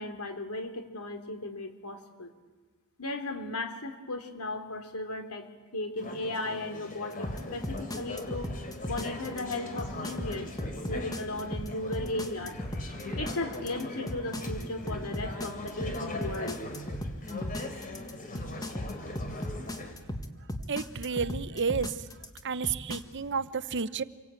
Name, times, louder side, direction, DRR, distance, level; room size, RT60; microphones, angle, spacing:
voice 1, 0.0-2.3 3.0-8.5 8.9-10.5 10.9-12.6 13.2-16.6, left 2 dB, 80° left, 6 dB, 3.3 m, -36 dB
Conversation / Chatter, 6.0-19.9, left 2 dB, 40° left, 3.7 m, -40 dB
sound 1, 7.2-23.0, left 1 dB, 15° left, 1.8 m, -36 dB
voice 2, 20.7-21.9 22.4-24.0, right 5 dB, 55° right, 15 dB, 0.8 m, -31 dB
27.5 x 23.5 x 9.0 m, 1.3 s
head